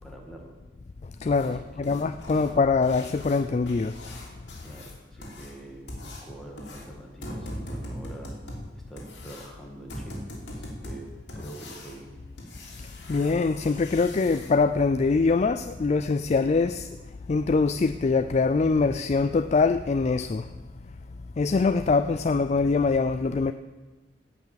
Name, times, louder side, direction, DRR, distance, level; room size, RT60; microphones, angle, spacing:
voice 1, 0.0-0.6 1.5-2.0 2.3-2.5 4.6-8.4 8.7-10.3 10.5-12.1, right 1 dB, ahead, 2.0 m, -45 dB
voice 2, 1.2-4.0 13.1-16.9 17.3-20.5 21.4-23.5, left 4 dB, 35° left, 0.3 m, -23 dB
sound 1, 1.3-14.5 16.8-16.9 17.4-17.5 17.9-18.0 18.5-18.6 19.1-19.2 19.6-19.7 20.2-20.3, left 1 dB, 60° left, 3.3 m, -42 dB
17.5 x 5.9 x 7.5 m
head